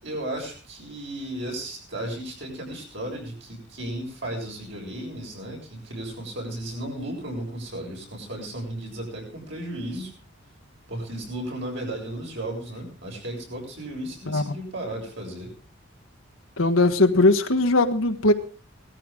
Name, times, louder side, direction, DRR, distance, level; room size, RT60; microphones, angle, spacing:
voice 1, 0.0-10.1 10.9-15.5, right 1 dB, 60° right, 0 dB, 7.1 m, -34 dB
voice 2, 16.6-18.3, left 2 dB, 75° left, 5 dB, 1.4 m, -19 dB
18.5 x 13.5 x 3.7 m, 0.37 s
head